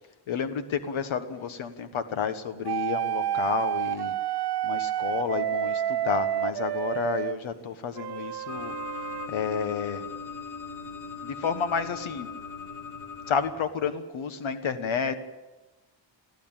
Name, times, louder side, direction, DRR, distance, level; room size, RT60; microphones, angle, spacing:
voice 1, 0.3-4.1 4.6-8.7 9.3-10.1 11.2-12.3 13.3-15.1, left 6 dB, 80° left, 10 dB, 1.5 m, -30 dB
sound 1, 2.7-7.3 8.0-9.3, right 11 dB, 55° right, 0.7 m, -29 dB
sound 2, 8.5-13.5, left 5 dB, 30° left, 1.9 m, -39 dB
21.5 x 14.5 x 8.9 m, 1.1 s
wide cardioid pair, 145°, 47 cm